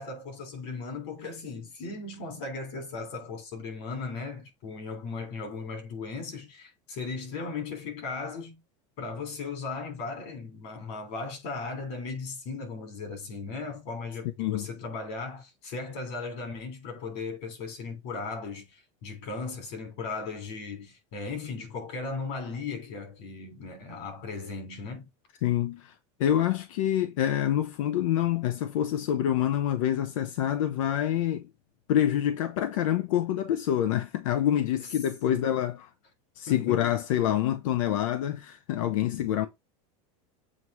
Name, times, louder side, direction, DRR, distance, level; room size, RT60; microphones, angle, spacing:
voice 1, 0.0-8.6 9.0-25.1 35.3-35.5 36.5-36.8, left 4 dB, 55° left, 3.2 m, -37 dB
voice 2, 25.4-25.9 26.2-31.5 31.9-35.9 36.4-39.5, left 11 dB, 90° left, 0.8 m, -26 dB
7.5 x 3.1 x 4.8 m
supercardioid pair, 170°, 16 cm